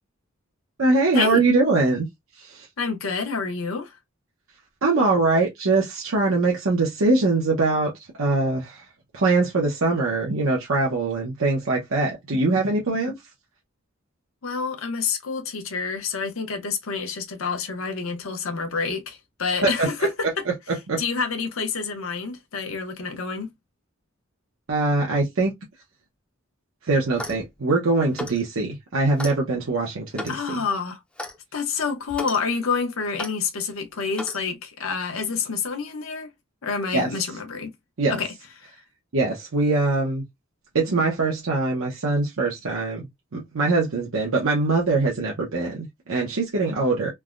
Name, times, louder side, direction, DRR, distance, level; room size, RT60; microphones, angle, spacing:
voice 1, 0.8-2.1 2.4-2.7 4.8-7.9 8.2-8.8 9.1-13.1 19.6-19.9 20.7-21.0 24.7-25.5 26.8-30.6 36.9-37.1 38.0-38.1 39.1-40.2 40.7-47.1, right 3 dB, 90° right, 0.8 m, -22 dB
voice 2, 2.8-3.9 14.4-20.3 21.0-23.5 30.3-31.0 31.5-36.3 36.6-37.7 38.1-38.3 38.6-38.7, left 5 dB, 90° left, 0.8 m, -28 dB
Clock, 27.1-27.5 28.1-28.4 29.2-29.4 30.1-30.4 31.2-31.4 32.1-32.4 33.2-33.3 34.1-34.4, left 1 dB, 5° left, 0.4 m, -34 dB
3.3 x 2.1 x 2.3 m
head